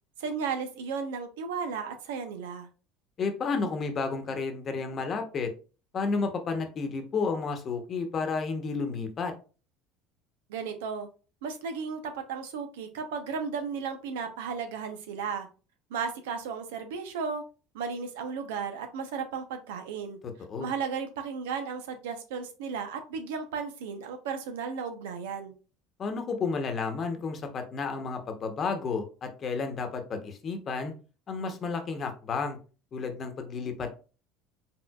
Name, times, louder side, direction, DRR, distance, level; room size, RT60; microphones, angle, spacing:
voice 1, 0.2-2.7 10.5-11.1 11.4-15.5 15.9-17.4 17.7-20.2 20.6-25.5, right 6 dB, 85° right, 7 dB, 0.8 m, -34 dB
voice 2, 3.2-5.5 5.9-9.3 20.4-20.7 26.0-30.9 31.3-32.6 32.9-33.9, left 4 dB, 40° left, 5 dB, 1.0 m, -31 dB
4.6 x 3.7 x 2.4 m, 0.35 s
supercardioid pair, 95°, 0 cm